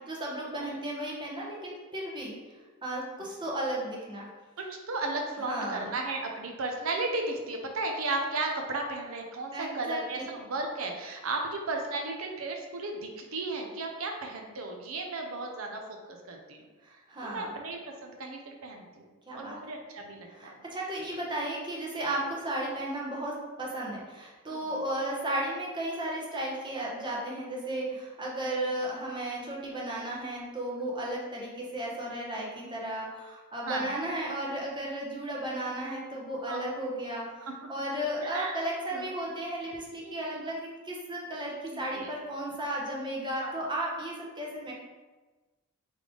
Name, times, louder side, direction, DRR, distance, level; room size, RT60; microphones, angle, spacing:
voice 1, 0.1-2.4 2.8-4.3 5.4-5.8 9.5-10.2 16.8-17.5 19.3-19.6 20.4-37.3 37.7-44.7, right 1 dB, 20° right, -4 dB, 0.9 m, -34 dB
voice 2, 4.6-16.6 17.2-19.1 19.3-20.5 24.5-24.7 27.7-27.8 28.5-28.7 30.8-31.1 32.6-32.9 33.7-33.9 35.0-35.1 36.5-36.7 37.5-37.6 38.2-38.6 38.9-39.1 40.0-40.2 41.7-42.1 43.4-43.6, right 2 dB, 75° right, 2 dB, 0.7 m, -35 dB
3.5 x 3.2 x 3.8 m, 1.2 s
head